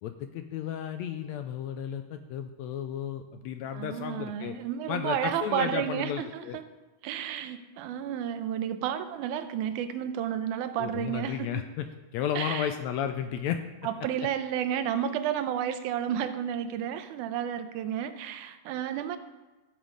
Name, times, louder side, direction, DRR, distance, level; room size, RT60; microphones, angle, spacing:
voice 1, 0.0-4.6 4.9-6.6 10.8-11.9 12.1-13.6, left 9 dB, 80° left, 8 dB, 1.7 m, -33 dB
voice 2, 3.7-6.6 7.0-11.5 12.4-12.7 13.8-19.2, right 9 dB, 80° right, 10 dB, 2.1 m, -31 dB
14.0 x 7.2 x 5.2 m, 1.2 s
omnidirectional pair, 3.6 m